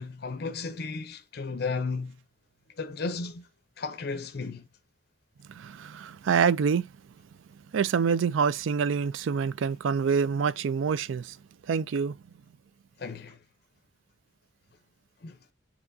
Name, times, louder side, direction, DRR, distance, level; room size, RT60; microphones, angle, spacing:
voice 1, 0.0-2.2 2.8-3.5 3.8-4.6 13.0-13.4 15.2-15.4, left 4 dB, 55° left, 0.5 m, -34 dB
voice 2, 5.5-6.9 7.7-11.4 11.7-12.2, right 6 dB, 80° right, 0.4 m, -26 dB
6.8 x 2.8 x 2.6 m
head